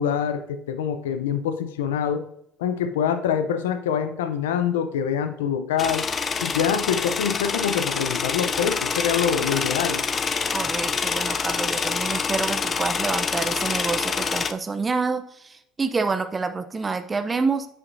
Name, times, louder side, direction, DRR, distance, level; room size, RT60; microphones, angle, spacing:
voice 1, 0.0-2.2 2.6-6.1 6.4-10.0, left 8 dB, 85° left, 9 dB, 0.6 m, -25 dB
sound 1, 5.8-14.5, left 5 dB, 35° left, 0.6 m, -26 dB
voice 2, 10.5-17.7, right 4 dB, 25° right, 8 dB, 0.6 m, -27 dB
9.3 x 5.8 x 2.6 m, 0.75 s
hypercardioid pair, 70°, 0 cm